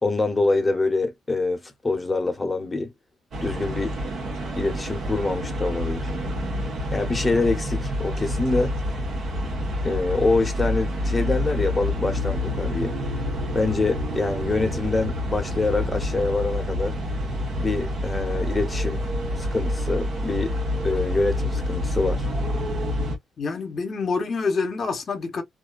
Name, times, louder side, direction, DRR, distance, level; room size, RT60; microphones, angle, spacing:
voice 1, 0.0-2.9 3.4-4.0 4.6-6.1 6.9-8.7 9.8-12.9 13.5-17.0 17.6-19.1 19.4-20.6 20.8-22.3, left 3 dB, 20° left, 1.0 m, -25 dB
sound 1, 3.3-23.2, left 1 dB, 55° right, 1.0 m, -28 dB
voice 2, 23.4-25.4, left 4 dB, 50° left, 1.0 m, -27 dB
2.5 x 2.2 x 2.3 m
cardioid pair, 90°, 0 cm